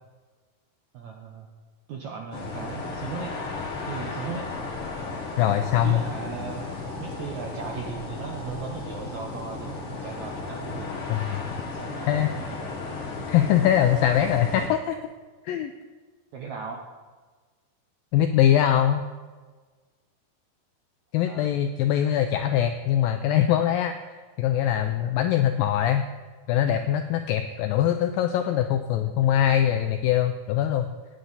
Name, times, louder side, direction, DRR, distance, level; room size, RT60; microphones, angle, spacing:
voice 1, 0.9-1.5 1.9-3.4 3.9-4.5 5.8-6.6 7.0-10.9 11.7-12.8 16.3-16.8 21.3-21.6 29.8-29.9, right 6 dB, 75° right, 0 dB, 1.7 m, -37 dB
sound 1, 2.3-14.7, left 4 dB, 60° left, 1.5 m, -35 dB
voice 2, 5.4-6.0 11.1-11.4 12.1-12.3 13.3-15.0 15.4-15.7 18.1-19.1 21.1-26.1 26.5-30.9, left 11 dB, 90° left, 7 dB, 2.0 m, -22 dB
sound 2, 5.4-10.5, right 2 dB, 50° right, 1.6 m, -47 dB
16.0 x 9.5 x 4.0 m, 1.4 s
omnidirectional pair, 4.6 m